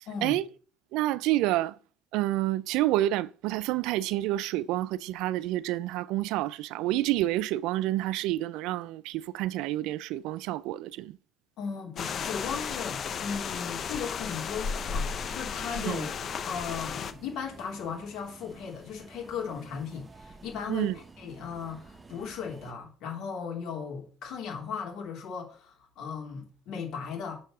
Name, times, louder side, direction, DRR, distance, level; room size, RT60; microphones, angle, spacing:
voice 1, 0.1-0.4 11.6-16.1 16.5-27.4, left 6 dB, 65° left, 2.6 m, -37 dB
voice 2, 0.9-1.8 2.1-11.2 15.7-16.1 20.7-21.0, right 15 dB, 75° right, 0.4 m, -28 dB
sound 1, 12.0-17.1, left 6 dB, 40° left, 0.6 m, -34 dB
sound 2, 14.7-22.7, right 3 dB, 20° right, 0.7 m, -51 dB
6.1 x 4.6 x 6.1 m
cardioid pair, 120°, 0 cm